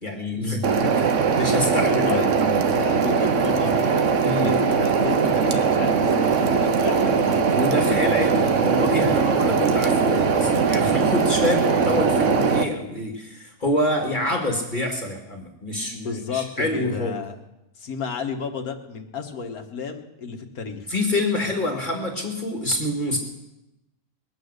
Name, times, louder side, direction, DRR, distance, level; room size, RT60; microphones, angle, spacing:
voice 1, 0.0-1.1 1.3-2.8 4.2-4.6 7.5-17.1 20.9-23.2, left 1 dB, 35° left, 1 dB, 2.2 m, -26 dB
sound 1, 0.6-12.6, right 5 dB, 60° right, 1.2 m, -20 dB
voice 2, 1.7-2.3 2.6-3.8 4.1-7.9 15.8-17.3 17.8-20.9, left 5 dB, 75° left, 4 dB, 1.9 m, -32 dB
22.0 x 9.1 x 6.6 m, 0.94 s
omnidirectional pair, 1.6 m